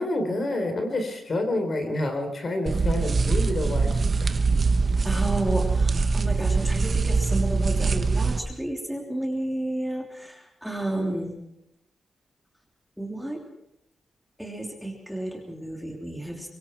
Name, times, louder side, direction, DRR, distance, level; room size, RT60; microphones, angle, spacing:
voice 1, 0.0-4.3, left 1 dB, 40° left, 5 dB, 4.0 m, -28 dB
sound 1, 2.7-8.4, right 4 dB, 40° right, 1.3 m, -23 dB
voice 2, 5.0-11.4 13.0-13.4 14.4-16.5, right 1 dB, ahead, 0 dB, 3.2 m, -31 dB
25.0 x 24.0 x 4.6 m, 0.80 s
wide cardioid pair, 160°, 0 cm